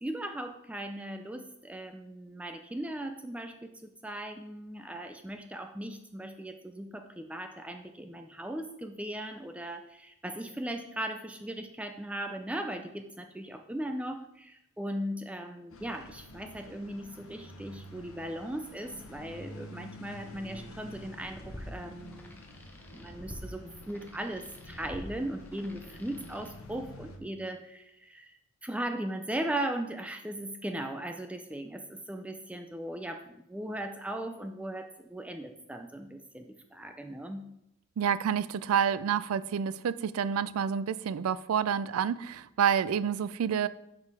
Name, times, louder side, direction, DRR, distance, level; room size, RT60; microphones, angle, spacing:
voice 1, 0.0-22.3 22.9-37.5, right 1 dB, 5° right, 6 dB, 0.4 m, -38 dB
sound 1, 15.7-27.2, left 1 dB, 75° left, 0.9 m, -49 dB
sound 2, 21.1-26.5, equal, 10° left, 0.8 m, -47 dB
voice 2, 38.0-43.7, right 7 dB, 85° right, 16 dB, 0.3 m, -28 dB
6.5 x 5.2 x 4.7 m, 0.81 s
head